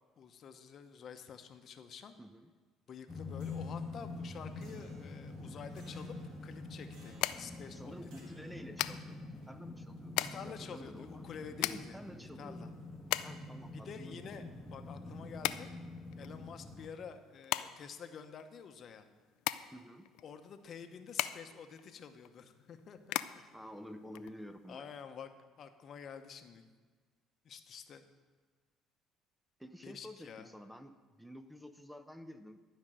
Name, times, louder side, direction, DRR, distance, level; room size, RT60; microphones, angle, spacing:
voice 1, 0.2-2.1 2.9-6.2 6.4-7.9 8.2-8.3 10.2-12.0 12.4-12.7 13.7-14.4 14.7-15.7 16.2-19.1 20.2-23.5 24.7-25.3 25.6-26.7 27.4-28.0 29.8-30.5, left 7 dB, 50° left, 8 dB, 0.8 m, -49 dB
voice 2, 2.2-2.5 7.7-12.7 13.2-14.4 19.7-20.1 23.5-24.9 29.6-32.7, equal, 5° right, 9 dB, 0.6 m, -50 dB
sound 1, 3.1-16.9, left 3 dB, 10° left, 1.1 m, -46 dB
sound 2, 3.1-16.6, right 2 dB, 70° right, 2.0 m, -65 dB
sound 3, 5.9-24.8, left 15 dB, 80° left, 0.3 m, -41 dB
12.0 x 5.2 x 7.5 m, 1.4 s
cardioid pair, 105°, 0 cm